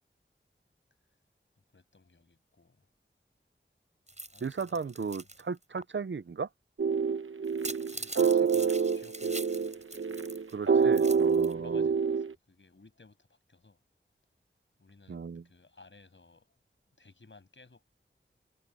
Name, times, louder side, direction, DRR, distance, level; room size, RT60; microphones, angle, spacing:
voice 1, 1.7-2.9 4.3-5.2 8.0-10.1 10.5-13.8 14.8-16.5 17.0-17.8, left 3 dB, 65° left, 7.3 m, -57 dB
sound 1, 4.1-5.4 5.8-5.9 7.4-10.5 10.8-11.5, right 2 dB, 35° right, 6.7 m, -43 dB
voice 2, 4.4-6.5 10.5-11.9 15.1-15.4, right 5 dB, 65° right, 0.7 m, -36 dB
sound 2, 6.8-12.3, right 6 dB, 85° right, 1.0 m, -27 dB
wide cardioid pair, 70°, 21 cm